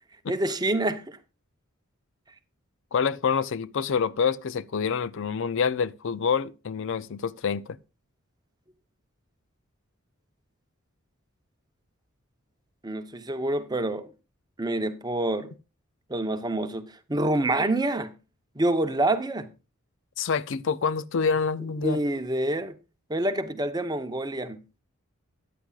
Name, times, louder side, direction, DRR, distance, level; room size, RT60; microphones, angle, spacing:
voice 1, 0.3-1.2 12.8-14.1 14.6-15.5 16.1-18.1 18.6-19.5 21.8-22.7 23.1-24.6, right 1 dB, 20° right, 0.8 m, -27 dB
voice 2, 2.9-7.6 20.2-22.0, left 6 dB, 65° left, 0.5 m, -27 dB
14.0 x 10.0 x 2.4 m
head